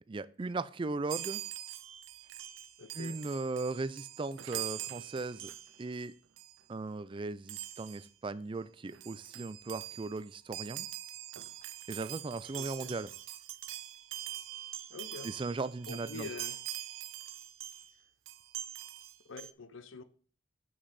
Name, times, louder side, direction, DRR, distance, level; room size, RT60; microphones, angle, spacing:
voice 1, 0.1-1.4 2.9-5.5 5.8-6.1 6.7-10.9 11.9-13.1 15.2-16.3, right 3 dB, 25° right, 0.4 m, -37 dB
Chime, 1.1-6.1 6.4-6.6 7.5-8.1 8.7-8.8 8.9-17.9 18.3-19.5, right 13 dB, 90° right, 0.5 m, -43 dB
voice 2, 2.8-3.2 12.5-12.9 14.9-15.3 15.9-16.6 19.2-20.0, left 3 dB, 90° left, 0.7 m, -45 dB
7.8 x 6.2 x 4.1 m
head